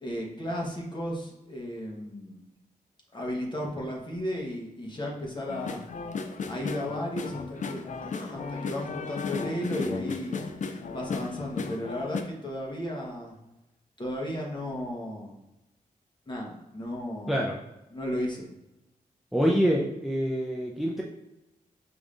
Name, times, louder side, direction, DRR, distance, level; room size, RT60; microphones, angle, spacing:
voice 1, 0.0-2.4 3.1-5.8 6.5-10.4 10.9-13.3 14.0-15.4 16.3-17.4 17.9-18.5, left 1 dB, 30° left, -2 dB, 1.1 m, -34 dB
sound 1, 5.5-12.2, left 5 dB, 55° left, 0.4 m, -35 dB
voice 2, 19.3-21.0, equal, ahead, -2 dB, 0.5 m, -25 dB
4.9 x 3.2 x 2.5 m, 0.95 s
wide cardioid pair, 90°, 15 cm